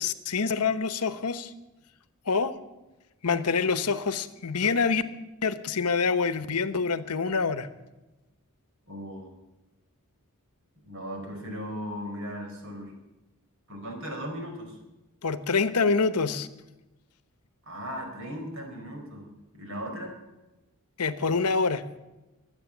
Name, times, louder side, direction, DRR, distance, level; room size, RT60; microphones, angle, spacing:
voice 1, 0.0-1.5 2.3-2.5 3.2-5.0 5.4-7.7 15.2-16.5 21.0-21.8, left 4 dB, 90° left, 12 dB, 1.0 m, -26 dB
voice 2, 8.9-9.3 10.8-13.0 13.7-14.8 17.6-20.1, equal, 60° right, 3 dB, 4.8 m, -37 dB
22.5 x 8.6 x 7.3 m, 1.0 s
head